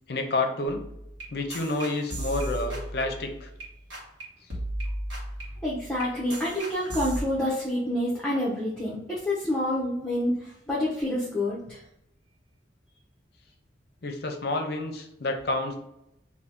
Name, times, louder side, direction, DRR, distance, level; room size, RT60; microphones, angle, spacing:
voice 1, 0.1-0.9 1.3-3.5 14.0-15.8, left 2 dB, 55° left, 5 dB, 0.5 m, -29 dB
sound 1, 0.7-3.6 3.9-4.2 4.5-7.2, right 1 dB, 85° right, 1.3 m, -35 dB
voice 2, 5.6-11.8, left 1 dB, 5° left, -7 dB, 0.6 m, -28 dB
2.7 x 2.6 x 3.4 m, 0.81 s
head